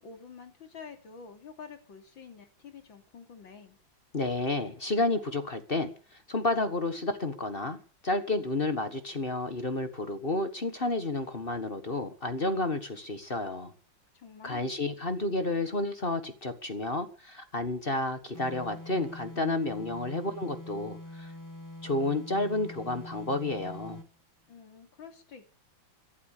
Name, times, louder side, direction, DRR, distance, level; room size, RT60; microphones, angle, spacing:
voice 1, 0.0-3.8 14.1-14.7 24.5-25.5, left 6 dB, 85° left, 7 dB, 3.5 m, -48 dB
voice 2, 4.1-5.9 6.3-13.7 14.4-21.3 21.8-24.0, left 2 dB, 30° left, 10 dB, 1.6 m, -31 dB
sound 1, 18.3-24.2, left 1 dB, 10° left, 1.5 m, -45 dB
18.0 x 11.5 x 6.7 m, 0.39 s
omnidirectional pair, 2.1 m